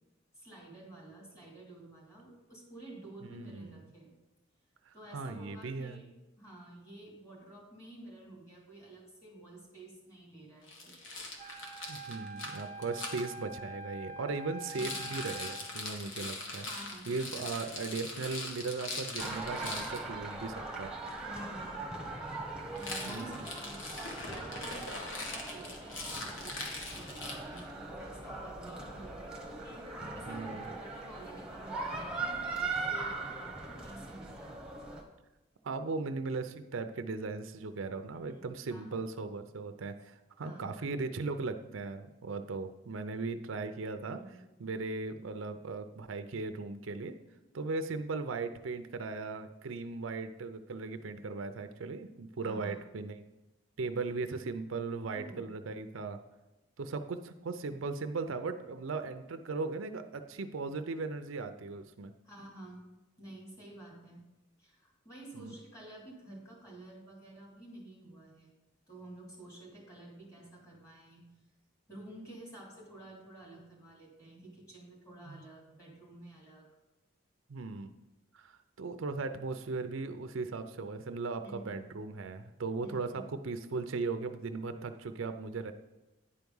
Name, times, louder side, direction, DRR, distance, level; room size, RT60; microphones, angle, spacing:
voice 1, 0.3-4.1 4.9-6.1 6.4-11.0 16.6-17.2 21.3-21.9 22.7-23.9 24.2-26.6 26.9-34.7 38.1-39.0 40.4-40.8 44.1-44.4 52.4-52.8 55.0-55.6 62.2-62.9 63.2-64.3 64.6-68.5 68.9-71.3 71.9-76.7 81.4-81.8 82.8-83.3, right 1 dB, 15° left, -3 dB, 2.6 m, -51 dB
voice 2, 3.3-3.8 4.9-6.0 11.9-16.7 17.1-20.9 23.0-23.4 30.3-30.7 35.6-44.2 44.6-47.2 47.5-53.2 53.8-56.2 56.8-62.1 65.3-65.5 75.3-75.4 77.5-77.9 78.3-85.7, right 3 dB, 75° right, 9 dB, 0.5 m, -38 dB
Rattle, 10.7-13.2 14.6-20.0 22.7-27.7, left 2 dB, 70° left, 1.4 m, -41 dB
Wind instrument woodwind instrument, 11.4-15.8, right 2 dB, 30° right, 0.7 m, -45 dB
sound 1, 19.2-35.0, right 3 dB, 5° right, 1.1 m, -40 dB
9.9 x 4.7 x 5.4 m, 1.0 s
head